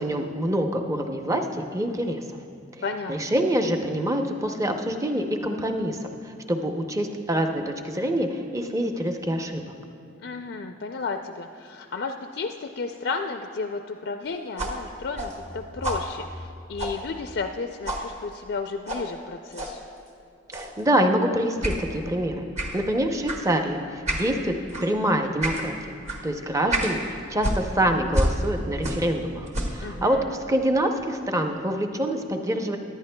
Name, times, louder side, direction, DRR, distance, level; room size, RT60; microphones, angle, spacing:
voice 1, 0.0-2.2 3.1-9.6 20.5-24.6 24.8-25.9 26.2-32.8, right 1 dB, 15° right, 5 dB, 0.6 m, -26 dB
voice 2, 2.8-3.3 10.2-19.8 29.8-30.4, left 4 dB, 60° left, 5 dB, 0.4 m, -33 dB
sound 1, 14.6-17.6 17.9-18.1 18.9-19.1 19.5-19.8 20.5-20.8 21.6-21.8 22.6-22.8 23.3-23.4 24.1-24.3 24.7-24.9 25.4-25.7 26.1-26.2 26.7-27.0 27.4-29.2 29.5-29.9, right 1 dB, 35° right, 1.1 m, -29 dB
18.0 x 11.0 x 2.2 m, 2.6 s
head